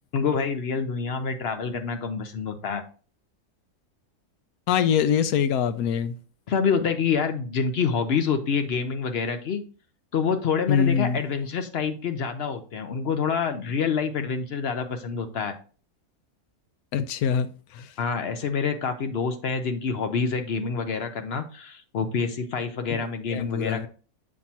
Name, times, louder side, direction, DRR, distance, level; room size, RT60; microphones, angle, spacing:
voice 1, 0.1-2.8 6.5-9.6 10.1-15.5 18.0-23.9, left 5 dB, 55° left, 0.7 m, -27 dB
voice 2, 4.7-6.1 10.7-11.2 16.9-17.9 23.3-23.9, left 8 dB, 75° left, 1.1 m, -24 dB
7.4 x 5.8 x 2.8 m
omnidirectional pair, 1.6 m